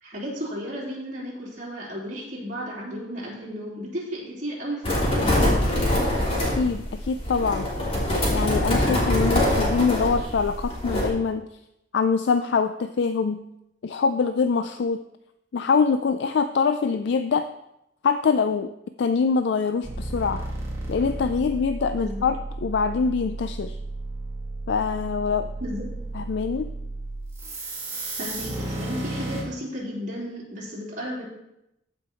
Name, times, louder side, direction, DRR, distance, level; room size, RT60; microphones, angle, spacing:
voice 1, 0.0-5.6 21.9-22.3 25.6-25.9 28.2-31.2, equal, 45° right, -6 dB, 3.6 m, -34 dB
sound 1, 4.8-11.1, left 1 dB, 30° left, 3.1 m, -24 dB
voice 2, 6.6-7.7 8.3-11.5 11.9-13.4 13.8-15.0 15.5-17.5 18.0-18.7 19.0-20.5 20.9-23.8 24.7-25.5 26.1-26.7, left 5 dB, 65° left, 9 dB, 0.4 m, -24 dB
sound 2, 19.8-29.4, right 2 dB, 15° right, 2.1 m, -33 dB
14.5 x 5.2 x 4.4 m, 0.84 s
head